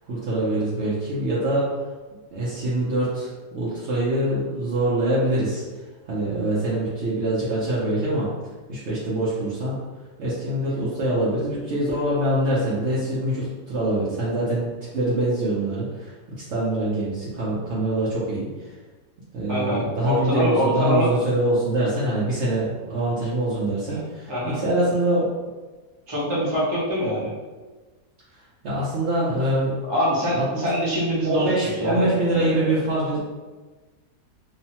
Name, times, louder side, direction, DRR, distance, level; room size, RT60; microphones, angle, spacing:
voice 1, 0.0-1.7 2.3-5.6 6.1-8.3 8.7-9.8 10.2-18.7 19.3-25.3 28.3-29.8 30.3-30.6 31.2-33.2, right 1 dB, 60° right, -7 dB, 0.7 m, -24 dB
voice 2, 19.5-21.1 24.3-24.6 26.1-27.3 29.9-31.5 31.8-32.8, equal, 30° right, -7 dB, 0.5 m, -24 dB
3.0 x 2.0 x 2.8 m, 1.3 s
omnidirectional pair, 1.6 m